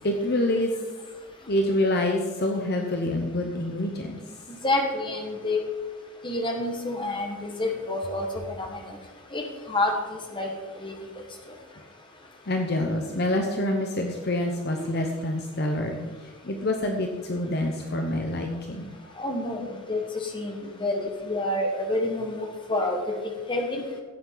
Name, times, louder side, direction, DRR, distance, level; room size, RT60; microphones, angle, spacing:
voice 1, 0.0-0.7 1.5-4.2 12.4-16.0 16.4-18.9, left 1 dB, 45° left, 3 dB, 0.9 m, -26 dB
voice 2, 4.6-5.6 6.2-9.0 9.3-10.5 10.8-10.9 19.2-23.8, left 2 dB, 20° left, 2 dB, 1.5 m, -28 dB
14.5 x 8.6 x 4.0 m, 1.3 s
head